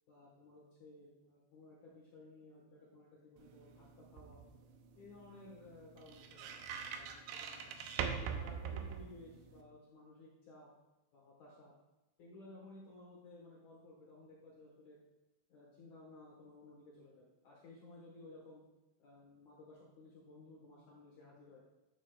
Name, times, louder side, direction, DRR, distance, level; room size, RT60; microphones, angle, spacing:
voice 1, 0.1-4.4 5.0-6.6 6.9-7.8 8.2-10.7 11.1-11.7 12.2-15.0 15.5-18.6 19.0-21.6, left 2 dB, 75° left, -5 dB, 1.7 m, -57 dB
sound 1, 3.4-9.6, right 7 dB, 85° right, 2.4 m, -44 dB
11.0 x 9.3 x 2.3 m, 1.0 s
omnidirectional pair, 5.7 m